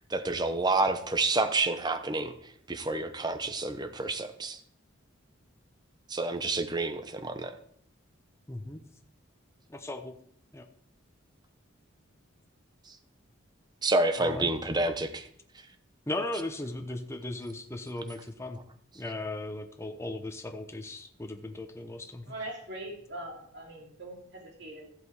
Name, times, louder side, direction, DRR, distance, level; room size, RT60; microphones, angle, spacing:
voice 1, 0.1-2.3 2.7-4.6 6.1-7.5 13.8-15.3, right 2 dB, 20° right, 7 dB, 0.9 m, -29 dB
voice 2, 8.5-8.8 9.7-10.1 10.5-10.6 14.2-14.5 16.1-18.6 18.9-22.3, left 2 dB, 15° left, 5 dB, 0.8 m, -37 dB
voice 3, 22.3-24.9, right 1 dB, 60° right, -1 dB, 2.9 m, -42 dB
14.0 x 8.3 x 4.8 m, 0.65 s
head